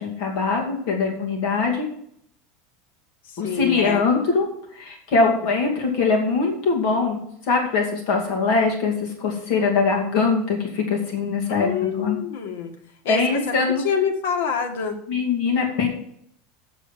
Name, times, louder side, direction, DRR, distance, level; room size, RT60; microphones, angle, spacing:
voice 1, 0.0-1.9 3.4-4.5 4.7-12.2 13.1-13.8 15.1-15.9, left 4 dB, 45° left, 0 dB, 2.4 m, -22 dB
voice 2, 3.2-4.0 11.5-12.7 13.0-13.5 13.8-15.0, left 7 dB, 80° left, 5 dB, 1.7 m, -26 dB
7.6 x 6.9 x 7.5 m, 0.68 s
supercardioid pair, 175°, 0 cm